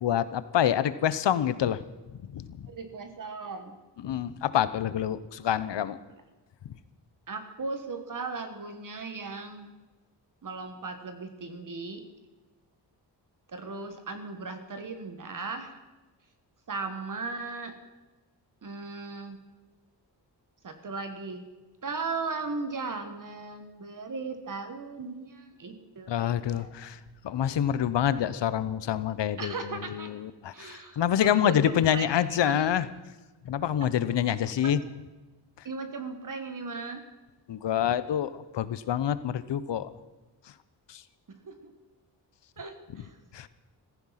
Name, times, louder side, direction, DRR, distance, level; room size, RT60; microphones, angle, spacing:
voice 1, 0.0-1.8 2.3-2.7 4.0-6.0 26.1-27.0 27.2-32.9 33.4-34.8 37.5-39.9 40.9-41.0 43.3-43.5, left 10 dB, 85° left, 15 dB, 0.9 m, -27 dB
voice 2, 2.7-3.7 7.3-9.7 10.4-12.0 13.5-15.7 16.7-17.7 18.6-19.4 20.6-21.4 21.8-26.9 29.4-30.1 30.5-32.1 32.4-32.7 34.5-34.7 35.6-37.0 41.4-41.7 42.6-43.2, right 3 dB, 50° right, 8 dB, 1.5 m, -37 dB
15.5 x 15.0 x 5.8 m, 1.1 s
wide cardioid pair, 165°, 42 cm